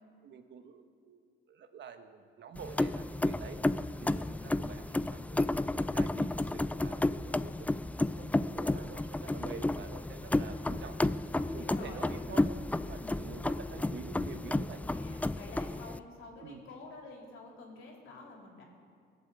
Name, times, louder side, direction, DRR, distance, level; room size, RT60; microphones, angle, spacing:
voice 1, 0.2-3.6 4.0-5.5 5.8-7.7 8.1-11.0 11.3-12.5 12.8-14.8 16.4-16.6, right 6 dB, 65° right, 8 dB, 1.3 m, -48 dB
sound 1, 2.6-16.0, left 2 dB, 5° left, 0.3 m, -32 dB
voice 2, 4.1-4.7 9.2-9.9 11.4-12.2 13.0-13.3 14.9-18.6, left 3 dB, 80° left, 0 dB, 3.4 m, -49 dB
20.0 x 7.5 x 8.3 m, 2.2 s
cardioid pair, 90°, 20 cm